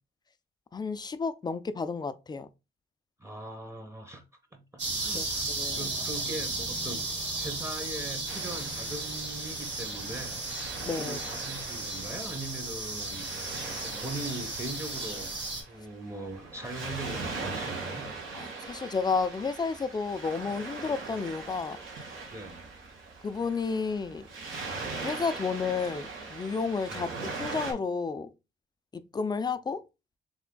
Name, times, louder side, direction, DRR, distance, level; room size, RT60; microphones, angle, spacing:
voice 1, 0.7-2.5 5.1-5.3 5.6-5.8 10.8-11.2 18.4-21.8 23.2-24.3 25.0-27.1 27.4-28.3 28.9-29.8, left 5 dB, 20° left, 0.4 m, -31 dB
voice 2, 3.2-4.2 4.5-5.5 5.7-7.0 7.3-10.4 10.8-15.3 15.7-18.1 22.3-22.6 26.9-27.1, right 2 dB, 15° right, 0.9 m, -40 dB
sound 1, 4.8-15.6, right 2 dB, 65° right, 1.8 m, -35 dB
Waves surf, 8.3-27.7, right 3 dB, 80° right, 1.8 m, -41 dB
3.5 x 3.2 x 3.7 m
cardioid pair, 90°, 20 cm